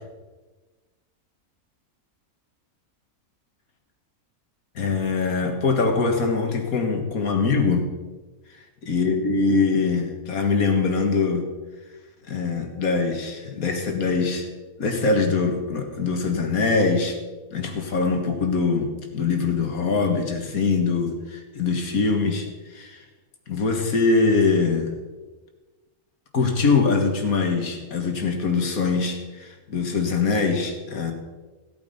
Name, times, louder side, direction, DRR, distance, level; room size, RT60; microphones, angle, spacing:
voice 1, 4.8-7.9 8.8-11.5 12.3-14.5 14.8-17.2 17.5-23.0 23.5-24.9 26.3-31.1, left 4 dB, 70° left, 4 dB, 2.0 m, -23 dB
16.0 x 8.3 x 5.2 m, 1.2 s
omnidirectional pair, 1.6 m